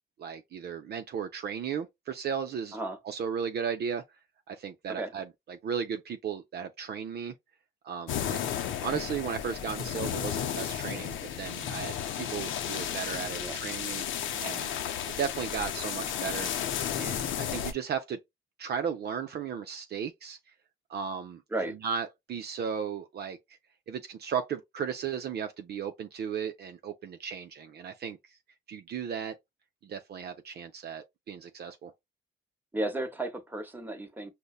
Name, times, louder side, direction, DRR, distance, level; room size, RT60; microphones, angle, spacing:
voice 1, 0.2-2.8 3.0-4.0 4.5-7.3 7.8-8.4 8.8-14.0 14.4-14.7 15.1-16.5 16.9-18.2 18.6-20.4 20.9-21.4 21.7-23.4 23.9-28.2 28.7-29.4 29.8-31.9, right 7 dB, 55° right, 0.5 m, -35 dB
sound 1, 8.1-17.7, left 9 dB, 75° left, 0.6 m, -33 dB
voice 2, 32.7-34.3, right 2 dB, 10° right, 0.9 m, -34 dB
5.2 x 2.1 x 2.3 m
cardioid pair, 90°, 20 cm